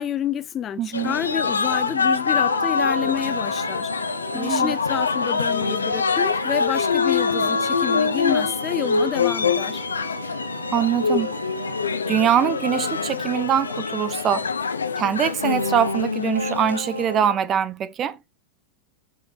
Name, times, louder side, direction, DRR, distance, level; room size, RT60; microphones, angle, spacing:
voice 1, 0.0-3.9 4.3-9.8, left 9 dB, 25° left, 0.8 m, -29 dB
voice 2, 0.8-1.2 4.3-4.7 10.7-11.3 12.1-14.5 15.0-18.2, right 9 dB, 30° right, 0.7 m, -23 dB
sound 1, 0.9-17.3, left 5 dB, 75° left, 0.8 m, -24 dB
sound 2, 2.3-11.9 16.3-17.4, right 4 dB, 75° right, 1.1 m, -37 dB
8.1 x 4.9 x 2.7 m
figure-of-eight pair, 90°, 0 cm